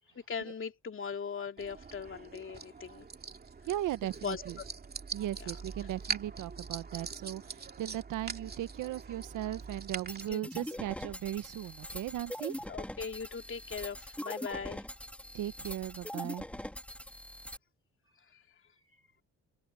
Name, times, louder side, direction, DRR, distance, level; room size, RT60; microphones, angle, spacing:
voice 1, 0.1-3.1 4.2-4.7 5.4-5.5 10.3-10.8 12.7-14.9 18.3-18.4, left 6 dB, 45° left, 2.7 m, -40 dB
sound 1, 1.6-10.3, right 5 dB, 30° right, 2.5 m, -43 dB
voice 2, 3.7-4.6 5.1-12.6 15.3-16.4, right 13 dB, 80° right, 1.2 m, -37 dB
sound 2, 10.1-17.6, left 1 dB, 5° left, 3.1 m, -42 dB
open air
cardioid pair, 90°, 30 cm